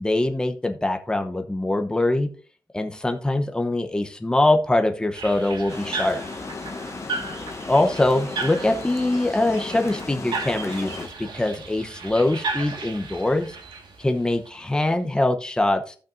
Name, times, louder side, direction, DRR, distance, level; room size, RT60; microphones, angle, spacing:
voice 1, 0.0-2.3 2.7-6.2 7.7-13.6 14.0-16.0, left 2 dB, 10° left, 0.8 m, -23 dB
sound 1, 5.1-14.9, right 3 dB, 70° right, 1.7 m, -35 dB
Water, 5.7-11.1, left 4 dB, 35° left, 1.0 m, -35 dB
16.0 x 5.9 x 2.6 m
wide cardioid pair, 155°, 8 cm